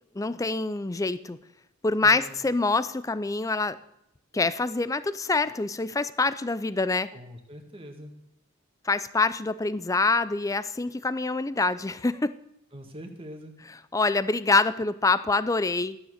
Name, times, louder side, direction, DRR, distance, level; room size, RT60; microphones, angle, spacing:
voice 1, 0.2-1.4 1.8-3.8 4.3-7.1 8.8-12.4 13.9-16.0, left 3 dB, 15° left, 15 dB, 0.4 m, -25 dB
voice 2, 2.0-2.3 7.1-8.1 12.7-13.5, equal, 25° right, 4 dB, 1.8 m, -43 dB
13.0 x 9.8 x 6.5 m, 0.81 s
head